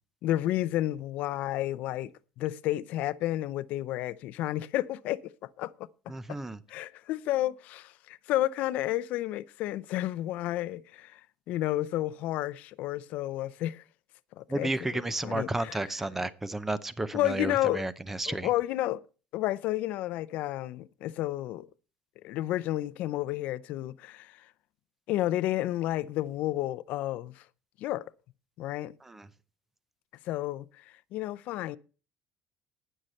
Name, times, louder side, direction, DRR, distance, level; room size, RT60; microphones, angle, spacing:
voice 1, 0.2-5.9 6.7-11.2 11.5-13.8 14.4-15.8 17.1-17.9 18.3-19.0 19.3-21.7 22.2-24.5 25.1-27.4 27.8-28.0 28.6-28.9 30.3-30.8 31.1-31.8, left 15 dB, 55° left, 0.5 m, -31 dB
voice 2, 6.1-6.6 14.5-18.5 29.1-29.3, right 2 dB, 10° right, 0.6 m, -32 dB
19.0 x 6.5 x 4.3 m
cardioid pair, 180°, 3 cm